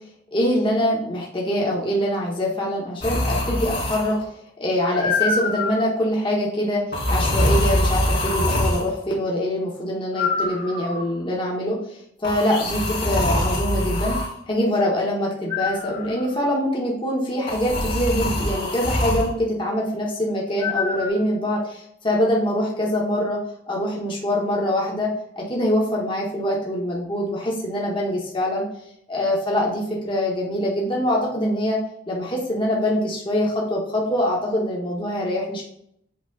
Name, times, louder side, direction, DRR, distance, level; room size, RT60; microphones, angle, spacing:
voice 1, 0.3-4.3 4.6-6.8 7.1-14.2 14.5-23.4 23.7-25.1 25.4-28.6 29.1-31.8 32.1-35.6, left 1 dB, 30° left, -4 dB, 1.2 m, -24 dB
sound 1, 3.0-4.2 4.9-5.8 6.9-8.9 10.2-11.1 12.2-14.3 15.5-16.2 17.5-19.3 20.6-21.1, left 1 dB, 65° left, 2.2 m, -24 dB
7.9 x 3.1 x 3.9 m, 0.73 s
head